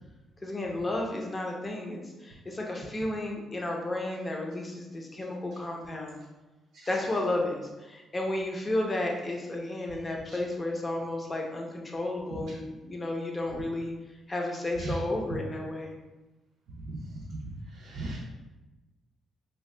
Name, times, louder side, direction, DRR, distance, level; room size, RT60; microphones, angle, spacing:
voice 1, 0.4-6.2 6.9-13.9 14.3-15.9, left 1 dB, 25° left, 0 dB, 0.7 m, -32 dB
voice 2, 17.8-18.2, right 2 dB, 75° right, -3 dB, 0.4 m, -36 dB
2.8 x 2.3 x 3.2 m, 1.1 s
cardioid pair, 90°, 0 cm